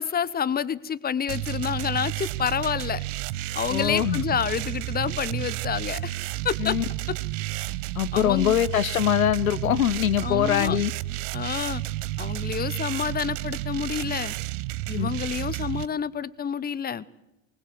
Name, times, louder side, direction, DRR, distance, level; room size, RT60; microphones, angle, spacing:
voice 1, 0.0-3.0 3.5-6.1 6.4-6.8 8.1-8.6 10.2-10.8 11.3-11.8 12.2-14.3 14.9-17.0, left 7 dB, 20° left, 1.0 m, -28 dB
sound 1, 1.3-15.9, right 17 dB, 65° right, 0.8 m, -31 dB
voice 2, 3.7-4.2 6.6-6.8 8.0-10.9 15.0-15.1, left 11 dB, 90° left, 0.8 m, -23 dB
20.5 x 19.5 x 7.9 m
hypercardioid pair, 75°, 41 cm